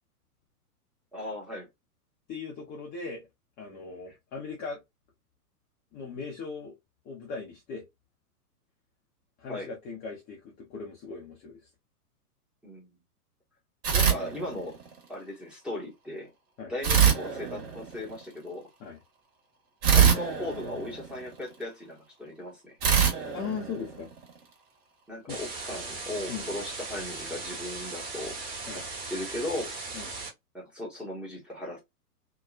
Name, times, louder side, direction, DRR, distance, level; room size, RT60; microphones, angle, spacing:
voice 1, 1.1-1.7 3.7-3.8 9.5-9.7 12.6-12.9 13.9-14.8 15.1-16.3 16.7-18.7 19.9-22.8 25.1-28.4 28.7-28.8 29.1-29.8 30.5-31.8, left 1 dB, ahead, 0.9 m, -37 dB
voice 2, 2.3-3.3 3.6-4.8 5.9-6.7 7.0-7.9 9.4-11.6 16.6-16.7 18.8-19.0 23.3-24.1 25.3-25.4 26.3-26.5 28.7-28.9 29.9-30.1, left 5 dB, 20° left, 0.6 m, -38 dB
sound 1, 13.8-15.0 16.8-18.2 19.8-21.5 22.8-24.4, right 8 dB, 40° right, 1.4 m, -24 dB
sound 2, 25.3-30.3, right 3 dB, 20° right, 1.3 m, -38 dB
2.7 x 2.2 x 2.2 m
hypercardioid pair, 120°, 47 cm